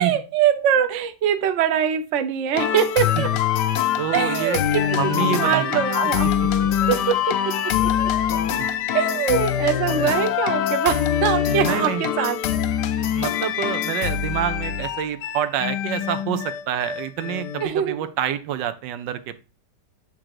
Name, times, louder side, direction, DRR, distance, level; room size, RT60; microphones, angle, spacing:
voice 1, 0.0-3.3 4.1-6.3 6.9-7.4 8.3-8.4 8.9-12.4 17.6-18.1, right 9 dB, 55° right, 8 dB, 0.9 m, -23 dB
sound 1, 2.5-17.7, left 9 dB, 75° left, 1.3 m, -24 dB
voice 2, 4.0-4.6 4.9-5.8 6.2-6.3 8.6-8.7 11.5-12.1 13.1-19.4, right 10 dB, 90° right, 12 dB, 1.4 m, -27 dB
8.9 x 3.7 x 4.6 m, 0.32 s
omnidirectional pair, 1.9 m